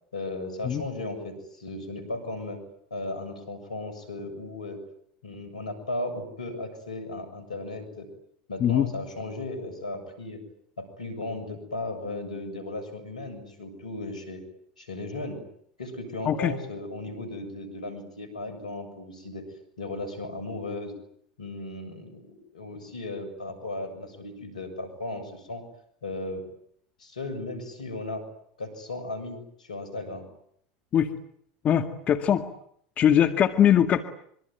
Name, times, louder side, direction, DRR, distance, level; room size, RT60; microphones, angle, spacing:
voice 1, 0.1-2.6 2.9-4.8 5.2-8.1 8.5-10.4 10.8-14.4 14.8-15.4 15.8-19.4 19.8-20.9 21.4-25.6 26.0-26.4 27.0-28.3 28.6-30.3, left 2 dB, 85° left, 10 dB, 7.2 m, -36 dB
voice 2, 31.6-32.5 33.0-34.0, left 9 dB, 40° left, 7 dB, 2.1 m, -21 dB
25.5 x 24.0 x 9.3 m, 0.68 s
hypercardioid pair, 85°, 4 cm